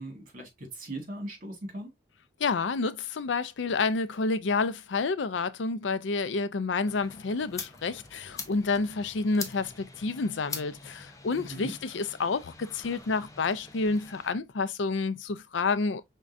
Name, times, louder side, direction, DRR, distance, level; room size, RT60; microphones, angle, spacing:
voice 1, 0.0-1.9 11.4-11.7, right 1 dB, 45° right, 1.8 m, -39 dB
voice 2, 2.4-16.0, left 4 dB, 85° left, 0.5 m, -29 dB
sound 1, 6.9-14.3, left 4 dB, 20° left, 0.7 m, -44 dB
5.3 x 3.6 x 2.5 m
head